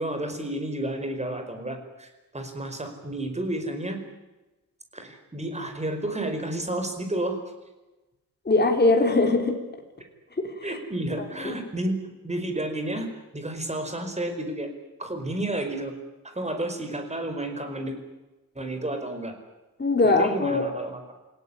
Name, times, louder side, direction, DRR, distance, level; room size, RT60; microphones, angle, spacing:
voice 1, 0.0-4.0 4.9-7.4 10.6-12.0 12.2-14.7 15.0-16.0 16.2-18.0 18.5-19.3 20.0-21.0, right 1 dB, 20° right, 6 dB, 4.8 m, -31 dB
voice 2, 8.5-9.6 10.4-10.5 11.4-11.5 19.8-20.6, left 3 dB, 30° left, 3 dB, 3.7 m, -21 dB
28.5 x 17.5 x 9.8 m, 1.1 s
wide cardioid pair, 165°, 35 cm